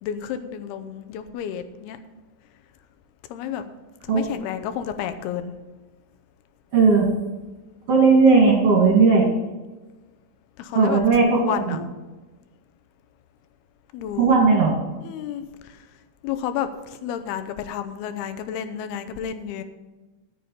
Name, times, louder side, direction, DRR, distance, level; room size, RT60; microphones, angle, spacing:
voice 1, 0.0-2.0 3.3-3.6 4.1-5.5 10.6-11.0 11.4-11.8 13.9-14.4 15.0-15.4 16.2-19.6, left 9 dB, 90° left, 9 dB, 2.8 m, -31 dB
voice 2, 6.7-7.1 7.9-9.3 10.7-11.8 14.2-14.7, right 4 dB, 45° right, -1 dB, 3.0 m, -16 dB
13.5 x 6.9 x 5.6 m, 1.2 s
omnidirectional pair, 4.4 m